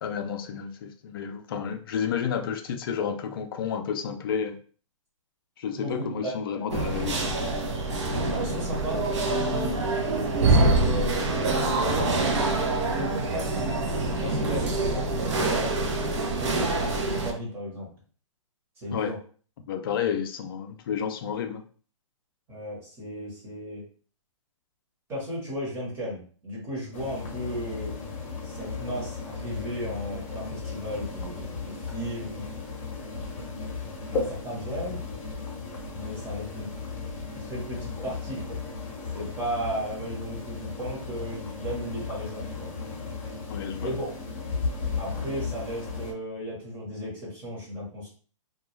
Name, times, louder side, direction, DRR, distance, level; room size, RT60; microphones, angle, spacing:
voice 1, 0.0-4.6 5.6-7.2 18.9-19.1 19.7-21.6 34.2-34.3 43.5-43.9, left 7 dB, 45° left, 6 dB, 0.4 m, -31 dB
sound 1, 6.7-17.3, right 2 dB, 60° right, 0.6 m, -25 dB
voice 2, 8.3-9.8 10.4-12.2 12.6-15.7 16.4-17.9 18.8-19.2 22.5-23.8 25.1-28.0 28.4-32.5 34.1-35.0 35.9-36.7 37.4-38.6 39.1-42.7 43.8-44.1 44.9-48.1, equal, 15° right, -5 dB, 1.0 m, -35 dB
sound 2, 26.9-46.1, left 4 dB, 25° left, 0.8 m, -35 dB
2.3 x 2.3 x 3.0 m, 0.42 s
hypercardioid pair, 155°, 17 cm